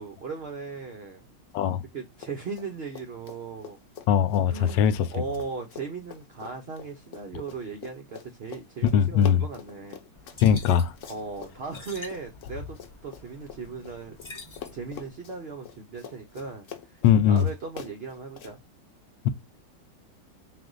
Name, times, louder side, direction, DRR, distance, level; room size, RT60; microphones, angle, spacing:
voice 1, 0.0-1.3 1.9-3.8 4.5-10.0 11.1-14.2 14.7-18.6, right 4 dB, 80° right, 0.5 m, -38 dB
Run, 2.1-2.7 2.9-14.3 14.6-18.5, left 9 dB, 60° left, 0.9 m, -44 dB
voice 2, 4.1-5.1 8.9-9.4 10.4-10.9 17.0-17.5, left 8 dB, 85° left, 1.3 m, -20 dB
sound 1, 10.1-15.1, left 3 dB, 40° left, 0.4 m, -47 dB
4.1 x 2.5 x 3.7 m
omnidirectional pair, 1.9 m